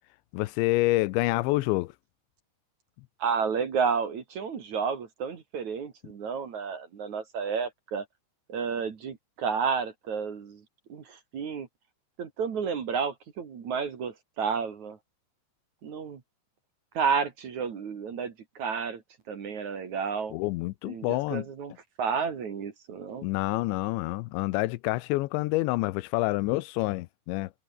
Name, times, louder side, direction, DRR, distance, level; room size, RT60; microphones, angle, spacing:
voice 1, 0.3-1.9 20.3-21.5 23.2-27.5, left 20 dB, 80° left, 2.9 m, -27 dB
voice 2, 3.2-8.0 8.5-10.6 10.9-11.7 12.2-15.0 15.8-16.2 16.9-19.0 19.3-20.4 20.8-21.7 22.0-23.3, right 6 dB, 45° right, 3.1 m, -31 dB
omnidirectional pair, 5.4 m